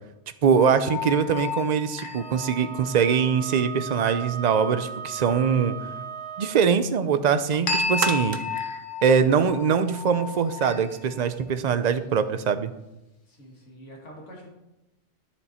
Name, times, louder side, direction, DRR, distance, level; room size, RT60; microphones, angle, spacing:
voice 1, 0.4-5.7 6.4-8.4 9.0-12.7, right 6 dB, 45° right, 11 dB, 0.6 m, -22 dB
sound 1, 0.5-3.4 7.7-11.2, left 4 dB, 45° left, 1.2 m, -32 dB
Wind instrument woodwind instrument, 2.1-6.7, right 6 dB, 25° right, 1.1 m, -37 dB
sound 2, 7.2-9.9 10.4-10.5, right 7 dB, 80° right, 1.1 m, -34 dB
voice 2, 13.3-14.5, equal, 70° left, -1 dB, 2.4 m, -45 dB
11.0 x 6.9 x 4.3 m, 0.95 s
omnidirectional pair, 1.3 m